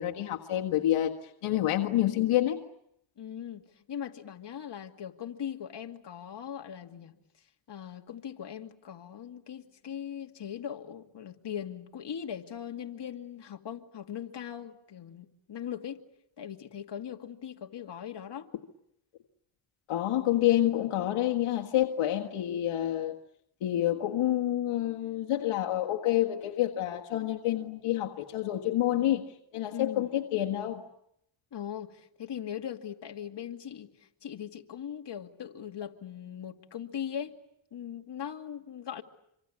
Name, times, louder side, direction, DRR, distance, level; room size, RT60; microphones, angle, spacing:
voice 1, 0.0-2.6 19.9-23.2 23.6-29.3 29.5-30.8, left 13 dB, 80° left, 1.7 m, -28 dB
voice 2, 3.2-7.1 7.7-16.0 16.4-18.5 29.7-30.1 31.5-37.4 37.7-39.0, left 9 dB, 55° left, 2.4 m, -40 dB
26.0 x 25.5 x 8.6 m
cardioid pair, 70°, 50 cm